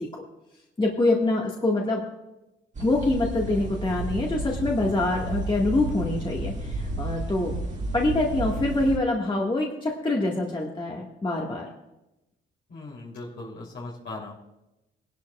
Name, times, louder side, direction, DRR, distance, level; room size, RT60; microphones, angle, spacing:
voice 1, 0.8-2.0 2.8-7.5 7.9-11.7, left 2 dB, 25° left, -2 dB, 1.7 m, -25 dB
sound 1, 2.7-9.0, right 2 dB, 35° right, 1.9 m, -32 dB
voice 2, 12.7-14.3, left 2 dB, 65° left, -4 dB, 3.1 m, -38 dB
18.5 x 11.5 x 2.4 m, 0.95 s
cardioid pair, 90°, 20 cm